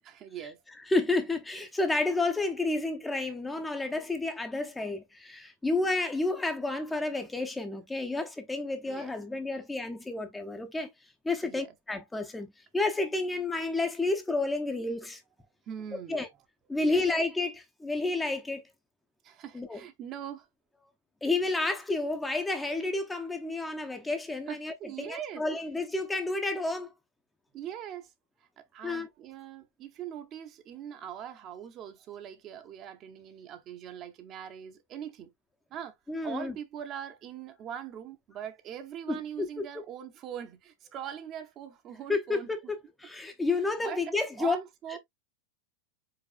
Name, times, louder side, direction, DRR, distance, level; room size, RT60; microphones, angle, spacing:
voice 1, 0.0-0.6 8.8-9.1 11.4-11.7 15.7-16.2 16.8-17.1 19.2-20.5 24.5-25.4 27.5-28.1 28.6-35.3 35.7-35.9 36.2-42.5 43.8-44.0 44.4-45.0, right 9 dB, 35° right, 0.9 m, -41 dB
voice 2, 0.8-10.9 11.2-12.5 12.7-15.2 16.1-16.3 16.7-18.6 19.5-19.8 21.2-26.9 28.8-29.1 36.1-36.6 39.1-39.2 42.1-44.6, left 2 dB, 10° left, 0.8 m, -30 dB
4.9 x 4.1 x 2.4 m
figure-of-eight pair, 90°, 0 cm